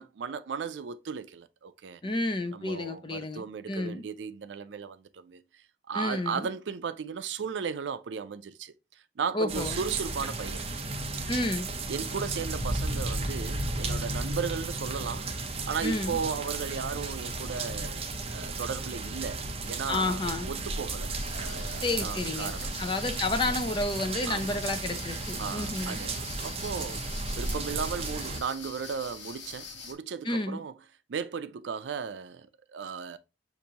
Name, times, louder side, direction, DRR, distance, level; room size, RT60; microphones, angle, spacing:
voice 1, 0.0-2.0 2.5-10.6 11.9-15.3 15.6-18.0 18.3-19.4 19.7-22.7 24.3-24.6 25.4-27.0 27.4-30.7 31.1-33.2, right 6 dB, 80° right, 0.4 m, -36 dB
voice 2, 2.0-4.0 5.9-6.5 9.3-9.8 11.3-11.7 15.8-16.2 19.9-20.5 21.8-22.5 22.8-26.0 30.2-30.6, left 2 dB, 25° left, 0.5 m, -30 dB
sound 1, 9.5-28.4, right 2 dB, 35° right, 0.6 m, -34 dB
sound 2, 21.2-29.9, left 4 dB, 80° left, 1.2 m, -44 dB
6.6 x 2.6 x 2.8 m
head